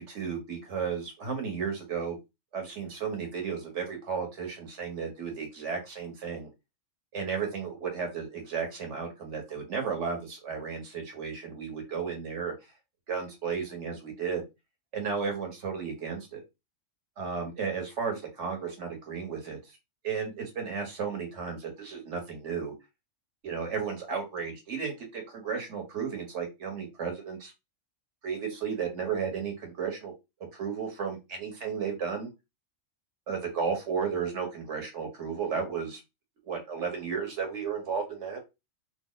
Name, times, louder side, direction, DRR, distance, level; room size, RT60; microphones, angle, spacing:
voice 1, 0.0-2.2 2.5-6.5 7.1-12.5 13.1-14.4 14.9-16.4 17.2-19.6 20.0-22.7 23.4-27.5 28.2-30.1 30.5-32.3 33.3-36.0 36.4-38.4, right 6 dB, 65° right, 3 dB, 1.3 m, -33 dB
2.8 x 2.1 x 3.8 m, 0.24 s
omnidirectional pair, 1.3 m